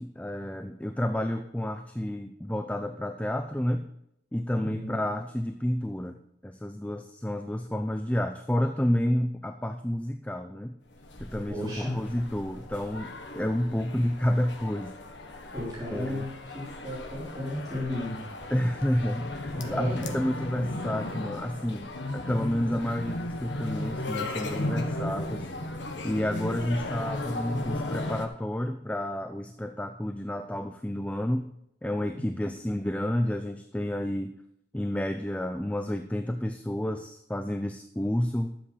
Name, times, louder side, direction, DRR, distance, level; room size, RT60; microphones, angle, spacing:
voice 1, 0.0-3.9 4.3-10.8 11.2-15.0 15.3-15.5 15.9-16.3 18.5-25.5 26.0-31.5 31.8-34.3 34.7-38.6, left 1 dB, 10° left, 7 dB, 0.5 m, -30 dB
voice 2, 4.6-5.0 11.5-12.0 15.5-18.2 19.5-20.1 32.1-32.5, left 1 dB, 20° right, -8 dB, 3.6 m, -34 dB
sound 1, 10.9-28.3, left 1 dB, 75° left, 1.5 m, -36 dB
12.0 x 7.7 x 5.8 m, 0.76 s
head